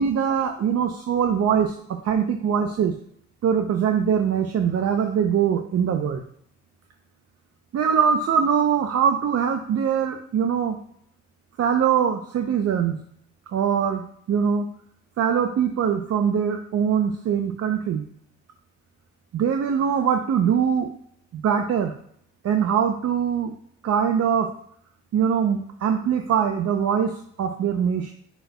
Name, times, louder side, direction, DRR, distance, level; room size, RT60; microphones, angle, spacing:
voice 1, 0.0-2.9 3.4-6.2 7.7-10.8 11.6-13.0 13.5-14.7 15.2-18.0 19.3-20.9 21.3-21.9 22.4-23.6 23.8-24.5 25.1-27.1 27.4-28.1, right 7 dB, 55° right, 5 dB, 0.6 m, -22 dB
7.9 x 6.0 x 2.2 m, 0.66 s
cardioid pair, 90°, 30 cm